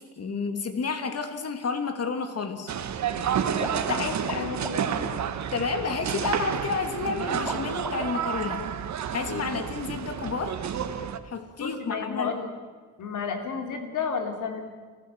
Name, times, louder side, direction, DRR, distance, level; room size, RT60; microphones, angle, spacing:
voice 1, 0.2-2.7 3.9-4.5 5.5-8.6 9.1-10.6 11.2-12.3, left 5 dB, 50° left, 7 dB, 2.9 m, -30 dB
sound 1, 2.7-11.2, right 8 dB, 65° right, 1.5 m, -30 dB
sound 2, 3.5-8.6, right 1 dB, 5° right, 2.7 m, -39 dB
voice 2, 3.9-5.2 8.6-8.7 9.3-9.5 11.6-12.5 13.0-14.6, left 6 dB, 80° left, 5 dB, 3.3 m, -32 dB
30.0 x 14.5 x 7.6 m, 1.5 s
cardioid pair, 90°, 31 cm